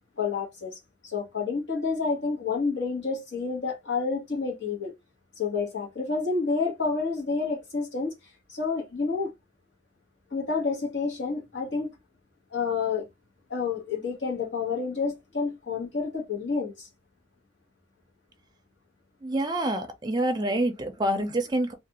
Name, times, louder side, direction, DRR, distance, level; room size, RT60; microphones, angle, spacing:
voice 1, 0.2-4.9 5.4-8.1 8.5-9.3 10.3-11.9 12.5-13.1 13.5-16.9, left 4 dB, 60° left, 1.2 m, -29 dB
voice 2, 19.2-21.7, right 1 dB, 20° right, 0.5 m, -27 dB
2.5 x 2.4 x 2.9 m
head